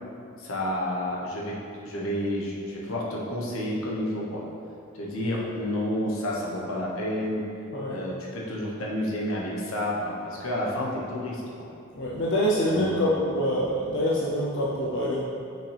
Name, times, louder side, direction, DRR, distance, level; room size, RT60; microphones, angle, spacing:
voice 1, 0.4-1.6 1.8-4.4 4.9-7.4 7.9-11.7 12.7-13.2, left 1 dB, 85° left, -4 dB, 1.1 m, -30 dB
voice 2, 12.0-15.2, equal, 60° left, -5 dB, 0.7 m, -25 dB
5.9 x 5.7 x 3.4 m, 2.7 s
head